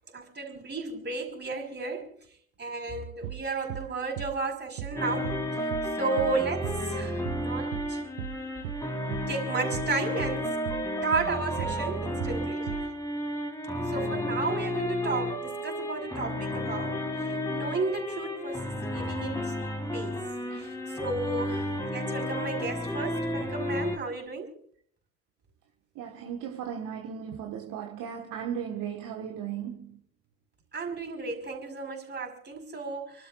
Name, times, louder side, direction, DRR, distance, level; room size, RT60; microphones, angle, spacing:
voice 1, 0.1-2.2 2.6-5.3 6.0-8.0 9.3-10.5 11.0-12.8 13.9-19.5 19.9-20.2 20.6-20.7 21.0-24.5 30.7-33.3, right 3 dB, 25° right, 5.6 m, -33 dB
sound 1, 3.2-3.4 3.7-3.9 4.2-4.4 4.8-5.0 5.2-5.4 5.7-5.9 6.2-6.4 6.6-6.8 7.2-7.4 7.7-7.9 8.2-8.4 8.6-8.8 9.1-9.3 9.7-9.9 10.2-10.4 10.7-10.9 11.1-11.3 11.6-11.8 12.2-12.4 12.7-12.9, right 12 dB, 65° right, 0.9 m, -37 dB
sound 2, 5.0-24.0, left 1 dB, 10° left, 3.6 m, -32 dB
voice 2, 26.0-30.0, right 8 dB, 50° right, 1.8 m, -36 dB
29.5 x 12.5 x 2.6 m
figure-of-eight pair, 55°, 40 cm